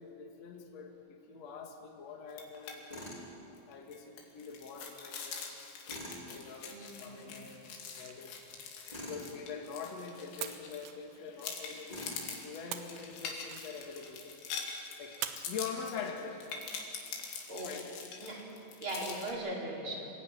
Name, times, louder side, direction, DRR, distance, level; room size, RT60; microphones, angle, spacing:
voice 1, 0.0-3.1 3.7-5.9 6.3-8.4 9.0-16.5 17.5-18.1 19.8-20.0, left 6 dB, 50° left, 1 dB, 2.5 m, -45 dB
sound 1, 2.3-2.8 3.1-3.2 3.6-11.0 11.4-19.3, left 5 dB, 85° left, 4.8 m, -44 dB
Tools, 2.9-3.3 5.8-6.2 8.9-9.3 11.9-12.3, left 1 dB, 10° left, 4.4 m, -44 dB
voice 2, 6.6-7.4 17.5-17.7 18.2-18.4 18.8-20.1, right 1 dB, 30° right, -3 dB, 5.0 m, -39 dB
sound 2, 7.6-9.9 10.4-12.0 12.7-14.1 15.2-16.6, right 11 dB, 90° right, 3.4 m, -46 dB
27.5 x 16.0 x 9.2 m, 2.7 s
omnidirectional pair, 5.1 m